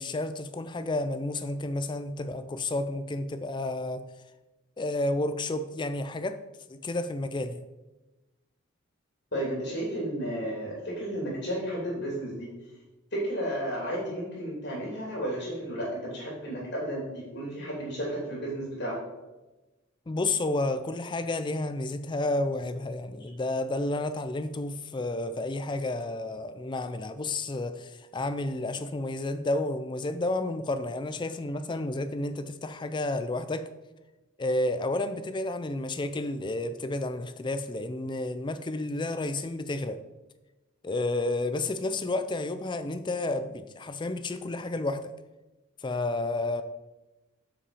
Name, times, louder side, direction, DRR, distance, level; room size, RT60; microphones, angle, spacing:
voice 1, 0.0-4.0 4.8-6.4 6.7-7.6 20.1-33.7 34.4-40.0 40.8-45.1 45.8-46.6, left 2 dB, 20° left, 11 dB, 0.4 m, -31 dB
voice 2, 9.3-12.5 13.1-19.0, right 1 dB, 55° left, -4 dB, 2.7 m, -33 dB
7.4 x 5.8 x 4.8 m, 1.1 s
head